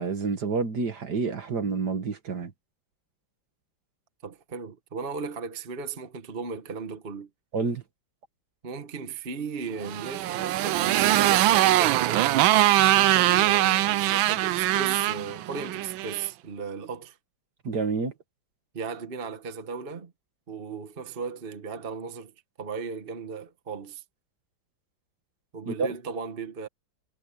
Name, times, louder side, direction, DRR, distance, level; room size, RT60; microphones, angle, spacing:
voice 1, 0.0-2.5 7.5-7.8 17.6-18.1 25.7-25.9, right 4 dB, 55° right, 2.3 m, -28 dB
voice 2, 4.2-7.3 8.6-12.3 12.9-17.2 18.7-20.1 20.5-22.3 22.6-24.0 25.5-26.7, right 5 dB, 30° right, 1.3 m, -36 dB
Motorcycle, 9.8-16.3, right 15 dB, 85° right, 1.4 m, -22 dB
omnidirectional pair, 2.1 m